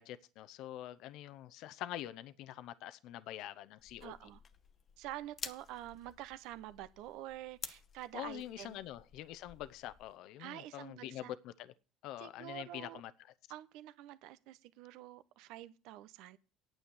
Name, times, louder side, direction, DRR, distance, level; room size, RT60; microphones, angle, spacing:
voice 1, 0.0-4.1 8.1-11.7 12.0-13.1, left 13 dB, 65° left, 0.6 m, -45 dB
sound 1, 3.8-10.2, left 6 dB, 35° left, 0.9 m, -51 dB
voice 2, 4.0-4.4 5.0-8.8 10.4-11.3 12.2-13.0 13.5-16.4, right 14 dB, 70° right, 0.8 m, -47 dB
9.1 x 7.8 x 7.0 m
supercardioid pair, 100°, 0 cm